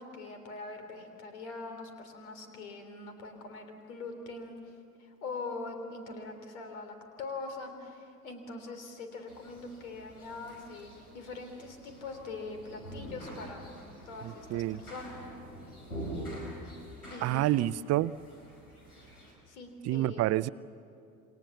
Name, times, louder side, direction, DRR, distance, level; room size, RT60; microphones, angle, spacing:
voice 1, 0.0-4.7 5.0-13.7 14.0-15.1 17.1-17.7 19.5-20.2, left 3 dB, 70° left, 6 dB, 3.5 m, -43 dB
sound 1, 9.3-19.3, right 1 dB, 85° left, 5.0 m, -45 dB
voice 2, 17.2-18.1 19.8-20.5, right 15 dB, 35° right, 18 dB, 0.6 m, -28 dB
28.0 x 25.0 x 7.3 m, 2.5 s
figure-of-eight pair, 60°, 44 cm